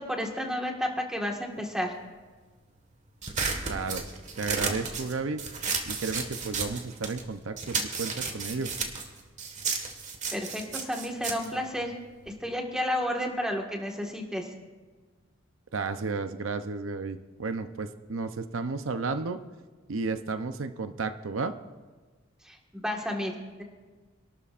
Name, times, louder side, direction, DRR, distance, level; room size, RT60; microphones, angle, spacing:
voice 1, 0.0-1.9 10.3-11.9 12.4-14.5 22.4-23.3 23.6-23.7, equal, 5° right, 1 dB, 1.6 m, -31 dB
sound 1, 3.2-7.3 7.6-12.4, right 5 dB, 40° right, 1.6 m, -33 dB
voice 2, 3.7-4.0 4.4-5.4 5.9-8.7 15.7-19.4 19.9-21.5, right 4 dB, 80° right, 9 dB, 0.7 m, -33 dB
26.5 x 12.5 x 2.5 m, 1.4 s
head